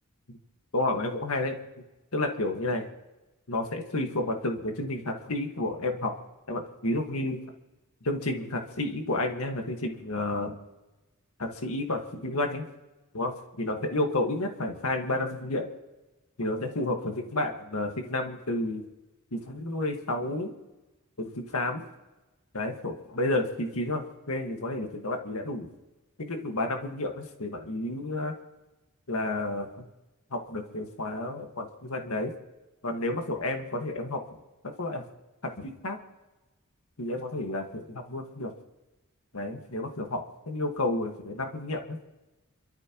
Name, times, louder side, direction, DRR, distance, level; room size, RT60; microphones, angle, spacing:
voice 1, 0.7-1.6 2.1-2.9 3.5-6.1 6.5-7.4 8.0-10.6 11.4-12.7 13.1-15.7 16.4-18.8 19.3-20.5 21.2-21.9 22.5-25.7 26.2-28.3 29.1-29.8 30.3-32.3 32.8-34.2 34.8-35.0 35.6-36.0 37.0-38.5 39.3-42.0, left 2 dB, 75° left, 3 dB, 1.8 m, -31 dB
27.5 x 13.5 x 3.1 m, 1.1 s
head